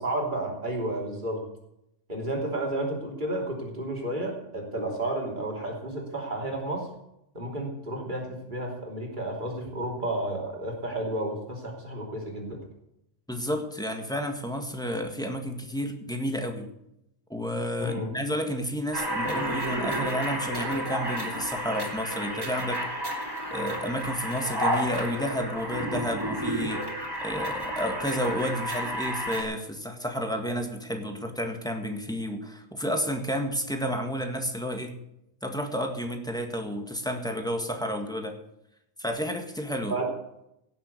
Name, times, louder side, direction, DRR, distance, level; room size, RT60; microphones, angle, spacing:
voice 1, 0.0-1.4 2.1-6.9 7.3-12.6 17.8-18.1 39.9-40.1, right 1 dB, 40° right, 0 dB, 3.3 m, -31 dB
voice 2, 13.3-16.7 17.3-22.9 23.5-26.8 27.2-34.9 35.4-38.4 39.0-40.0, equal, 5° left, 4 dB, 1.6 m, -31 dB
sound 1, 18.9-29.4, equal, 20° right, 2.9 m, -31 dB
17.0 x 7.2 x 6.8 m, 0.82 s
omnidirectional pair, 1.3 m